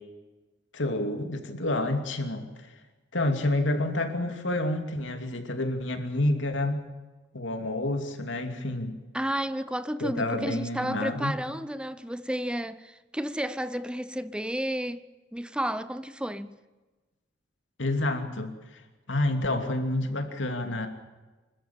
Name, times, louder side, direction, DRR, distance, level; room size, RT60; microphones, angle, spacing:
voice 1, 0.7-2.7 3.1-6.8 7.3-9.0 10.0-11.3 17.8-18.5 19.1-20.9, left 1 dB, 85° left, 2.8 m, -29 dB
voice 2, 9.1-15.0 15.3-16.6, equal, 5° right, 0.6 m, -32 dB
25.0 x 14.0 x 8.8 m
head